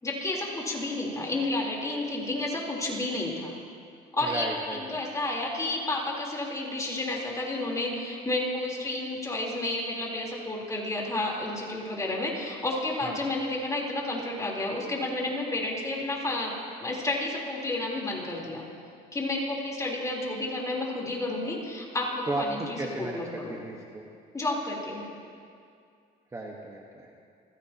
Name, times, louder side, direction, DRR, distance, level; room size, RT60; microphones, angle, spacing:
voice 1, 0.0-3.5 4.1-16.5 16.8-18.6 19.1-23.6 24.3-25.1, left 2 dB, 20° left, -3 dB, 3.8 m, -31 dB
voice 2, 4.2-5.1 13.0-13.2 22.3-24.0 26.3-27.1, right 2 dB, 20° right, -1 dB, 1.4 m, -35 dB
29.0 x 15.0 x 3.0 m, 2.3 s
cardioid pair, 110°, 17 cm